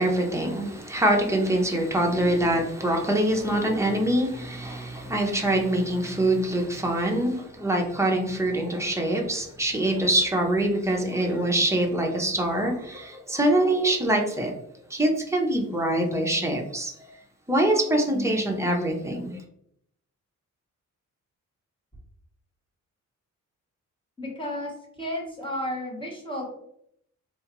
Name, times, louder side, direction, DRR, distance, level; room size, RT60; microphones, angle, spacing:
voice 1, 0.0-14.5 14.9-16.9 17.5-19.4, right 1 dB, 10° right, 0 dB, 0.5 m, -24 dB
voice 2, 24.2-26.5, left 1 dB, 15° left, -1 dB, 0.9 m, -33 dB
3.8 x 2.3 x 2.8 m, 0.71 s
wide cardioid pair, 140°, 31 cm